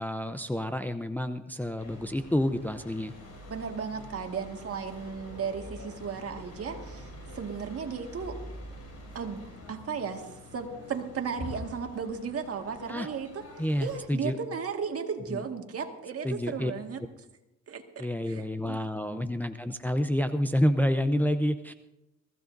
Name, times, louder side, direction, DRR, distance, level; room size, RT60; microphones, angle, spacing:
voice 1, 0.0-3.1 12.9-13.1 13.6-14.4 15.3-15.4 16.2-16.7 18.0-21.7, equal, 5° left, 8 dB, 0.6 m, -29 dB
sound 1, 1.8-14.0, left 2 dB, 55° left, 6.2 m, -45 dB
voice 2, 3.5-8.4 9.1-9.4 9.7-17.0 17.7-19.2, right 6 dB, 50° right, 4 dB, 1.9 m, -35 dB
22.5 x 15.0 x 2.7 m, 0.92 s
cardioid pair, 90°, 30 cm